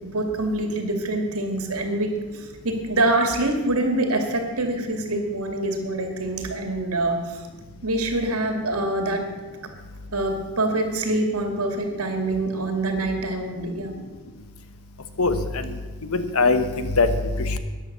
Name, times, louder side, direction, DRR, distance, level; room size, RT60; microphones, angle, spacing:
voice 1, 0.0-7.4 7.8-9.2 10.1-14.0, right 2 dB, 80° right, 5 dB, 2.4 m, -25 dB
voice 2, 15.2-15.7 16.0-17.1 17.4-17.6, left 3 dB, 75° left, 10 dB, 1.1 m, -22 dB
14.0 x 10.0 x 6.8 m, 1.3 s
head